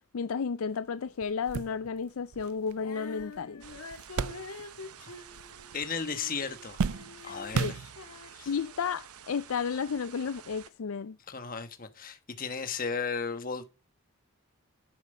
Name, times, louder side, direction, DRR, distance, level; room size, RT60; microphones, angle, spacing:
voice 1, 0.1-3.6 7.5-7.8 8.5-11.2, left 6 dB, 70° left, 0.4 m, -32 dB
sound 1, 0.7-0.8 1.2-5.0 5.3-6.0 6.3-8.3 9.1-9.2 10.5-10.6, right 5 dB, 75° right, 0.4 m, -36 dB
Female singing, 2.8-9.0, left 3 dB, 90° left, 1.8 m, -46 dB
sound 2, 3.6-10.7, right 9 dB, 90° right, 0.9 m, -50 dB
voice 2, 5.7-7.0 7.2-7.8 8.3-8.5 11.3-13.6, left 5 dB, 40° left, 1.2 m, -35 dB
11.5 x 7.3 x 5.4 m
head